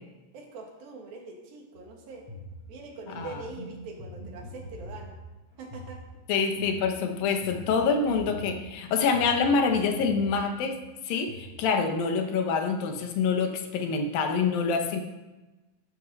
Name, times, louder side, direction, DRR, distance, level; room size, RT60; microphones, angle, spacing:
voice 1, 0.3-2.3 2.7-5.2 5.6-6.0, right 4 dB, 80° right, 1 dB, 3.7 m, -43 dB
sound 1, 1.8-11.5, equal, 40° left, 4.5 m, -44 dB
voice 2, 6.3-10.8 11.1-15.0, left 5 dB, 80° left, 5 dB, 2.9 m, -26 dB
13.0 x 12.0 x 4.1 m, 1.1 s
omnidirectional pair, 4.1 m